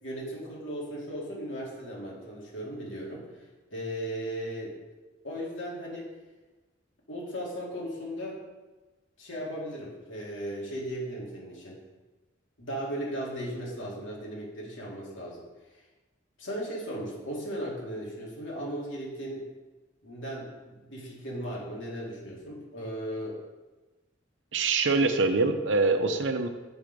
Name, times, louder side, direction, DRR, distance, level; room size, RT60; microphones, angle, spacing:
voice 1, 0.0-3.4 3.7-4.8 5.2-6.1 7.1-8.4 9.2-11.8 12.6-15.5 15.7-15.8 16.4-19.5 20.0-23.4, equal, 85° left, -4 dB, 2.6 m, -37 dB
voice 2, 24.5-26.5, right 3 dB, 75° right, 7 dB, 0.8 m, -24 dB
7.1 x 6.2 x 5.2 m, 1.2 s
head